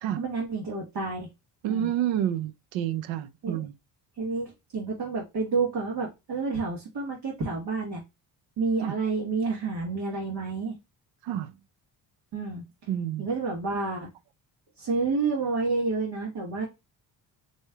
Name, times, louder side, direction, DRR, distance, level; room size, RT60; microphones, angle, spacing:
voice 1, 0.1-1.3 1.7-1.9 3.4-3.6 4.2-8.0 8.6-10.7 12.3-12.7 13.2-14.1 14.8-16.7, right 4 dB, 65° right, 1.5 m, -29 dB
voice 2, 1.6-3.7 8.8-9.0 11.2-11.5 12.9-13.3, right 10 dB, 90° right, 0.6 m, -29 dB
4.2 x 3.2 x 2.2 m
cardioid pair, 80°, 44 cm